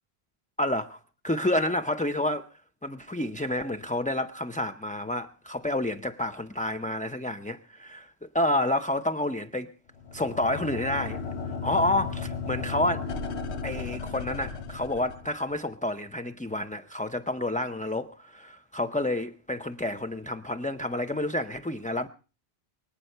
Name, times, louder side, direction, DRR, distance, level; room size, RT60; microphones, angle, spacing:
voice 1, 0.6-2.5 2.8-9.7 10.1-11.2 11.6-13.1 13.6-22.1, left 1 dB, 10° left, 0.5 m, -29 dB
sound 1, 9.9-15.6, left 5 dB, 85° left, 1.4 m, -35 dB
23.5 x 8.7 x 6.7 m
omnidirectional pair, 1.1 m